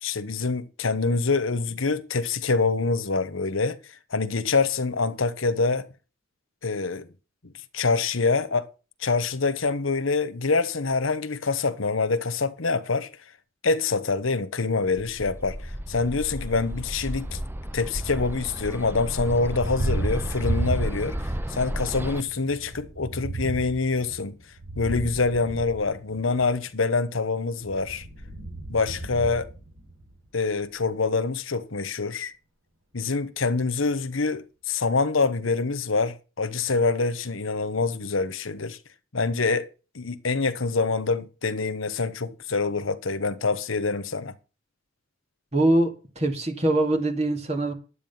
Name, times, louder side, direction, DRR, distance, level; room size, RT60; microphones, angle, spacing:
voice 1, 0.0-3.8 4.1-5.9 6.6-7.1 7.7-8.7 9.0-13.1 13.6-17.4 17.7-21.2 21.5-24.4 24.7-28.0 28.7-29.5 30.3-32.3 32.9-38.8 39.1-44.3, left 4 dB, 90° left, 1.2 m, -25 dB
Bird, 14.9-22.2, equal, 10° right, 0.6 m, -32 dB
Thunder, 18.9-21.3 21.7-26.5 27.5-30.2, right 2 dB, 65° right, 5.8 m, -34 dB
voice 2, 45.5-47.7, right 1 dB, 35° right, 2.6 m, -23 dB
11.5 x 8.5 x 5.7 m
head